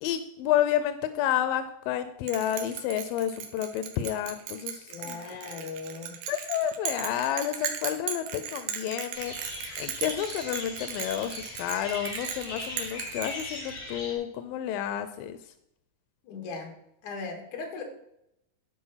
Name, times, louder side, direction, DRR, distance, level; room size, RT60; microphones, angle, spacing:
voice 1, 0.0-5.2 6.3-15.5, left 11 dB, 90° left, 11 dB, 2.4 m, -30 dB
Bell, 2.3-13.9, right 8 dB, 70° right, 2.4 m, -37 dB
voice 2, 4.9-6.2 16.2-16.7 17.0-17.8, left 4 dB, 65° left, 3 dB, 3.1 m, -38 dB
sound 1, 9.1-14.1, left 2 dB, 45° left, 5.5 m, -39 dB
12.5 x 4.9 x 5.6 m, 0.80 s
omnidirectional pair, 4.0 m